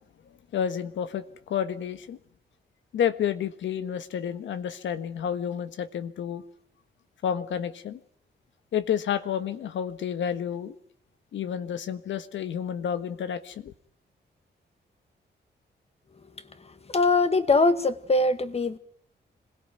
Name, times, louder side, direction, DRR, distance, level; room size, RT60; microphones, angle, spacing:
voice 1, 0.5-2.2 2.9-6.4 7.2-8.0 8.7-10.8 11.3-13.7, left 8 dB, 90° left, 1.5 m, -30 dB
voice 2, 16.9-18.8, left 3 dB, 35° left, 1.9 m, -22 dB
26.0 x 17.5 x 9.4 m
cardioid pair, 80°, 19 cm